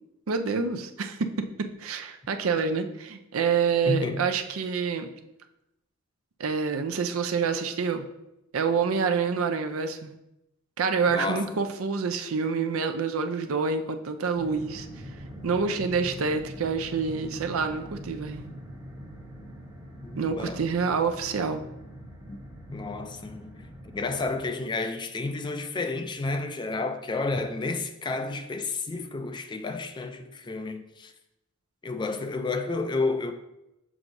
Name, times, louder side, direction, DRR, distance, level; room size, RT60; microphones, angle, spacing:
voice 1, 0.3-5.1 6.4-8.0 8.5-10.1 10.8-14.9 15.4-18.5 20.2-21.7, right 5 dB, 80° right, 0.5 m, -27 dB
voice 2, 3.9-4.3 11.1-11.5 20.0-20.6 22.3-22.4 22.7-31.1 31.8-33.3, left 3 dB, 20° left, 0.3 m, -31 dB
sound 1, 14.4-24.5, equal, 20° right, 1.0 m, -43 dB
6.0 x 5.9 x 2.6 m
head